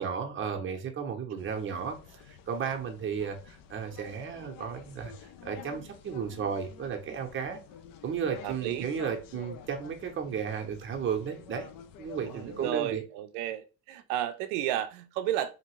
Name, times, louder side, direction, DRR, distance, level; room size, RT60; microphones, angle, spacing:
voice 1, 0.0-7.6 8.0-11.7 12.0-13.0, right 7 dB, 30° right, 0.7 m, -34 dB
sound 1, 1.4-12.7, left 7 dB, 60° left, 0.5 m, -50 dB
voice 2, 8.4-8.9 12.2-15.5, right 12 dB, 85° right, 0.6 m, -33 dB
2.8 x 2.5 x 3.0 m
cardioid pair, 100°, 39 cm